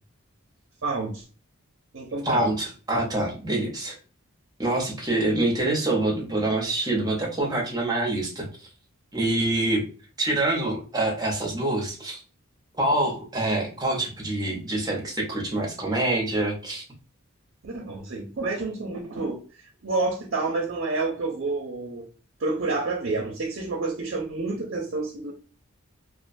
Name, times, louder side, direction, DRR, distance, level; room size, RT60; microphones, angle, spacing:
voice 1, 0.8-1.3 1.9-2.6 17.6-19.4 19.8-22.1 22.4-25.3, right 3 dB, 55° right, 0.5 m, -29 dB
voice 2, 2.2-3.9 4.6-8.7 9.1-9.8 10.2-12.2 12.8-16.8, right 2 dB, 20° right, 0.6 m, -26 dB
2.4 x 2.2 x 2.5 m
head